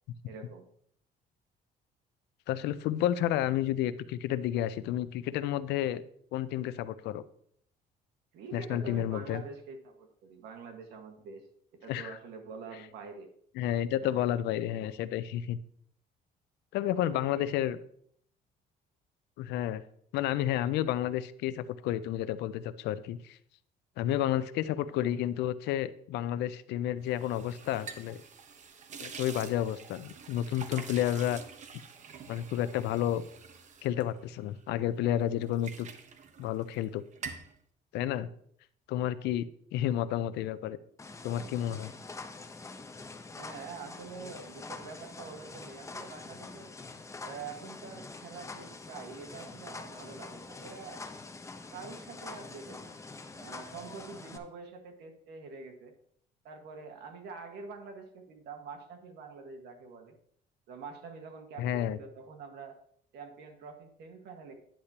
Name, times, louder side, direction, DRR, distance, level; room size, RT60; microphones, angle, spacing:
voice 1, 0.2-0.7 8.3-11.4 11.8-13.3 13.9-14.3 14.6-14.9 17.0-17.5 24.9-25.2 43.3-46.7 47.2-51.0 51.7-52.9 53.4-55.9 56.4-60.1 60.7-62.7 63.1-64.5, right 5 dB, 75° right, 4 dB, 1.7 m, -46 dB
voice 2, 2.5-6.0 6.3-7.2 8.5-9.4 11.9-12.2 13.6-15.6 16.7-17.8 19.4-19.8 20.1-23.4 24.0-28.2 29.0-31.4 32.3-33.2 33.8-35.9 36.4-37.0 37.9-38.3 38.9-39.4 39.7-40.8 41.2-41.9 61.6-62.0, left 12 dB, 85° left, 14 dB, 0.6 m, -31 dB
sound 1, 27.1-34.8 35.2-36.9 37.1-37.5, right 6 dB, 45° right, 1.0 m, -47 dB
sound 2, 41.0-54.4, left 3 dB, 15° left, 0.9 m, -45 dB
10.0 x 8.1 x 2.9 m, 0.65 s
cardioid pair, 110°, 17 cm